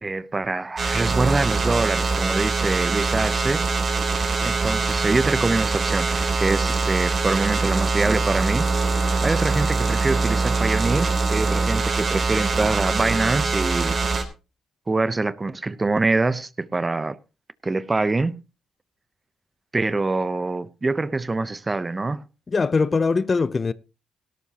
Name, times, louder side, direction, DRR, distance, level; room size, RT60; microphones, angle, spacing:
voice 1, 0.0-3.7 4.4-8.7 9.2-14.0 14.9-17.2 17.6-18.4 19.7-22.2, right 3 dB, 25° right, 0.7 m, -24 dB
sound 1, 0.8-14.2, right 4 dB, 45° right, 3.4 m, -23 dB
voice 2, 22.5-23.7, left 4 dB, 35° left, 0.6 m, -21 dB
17.0 x 13.0 x 2.9 m
cardioid pair, 75°, 0 cm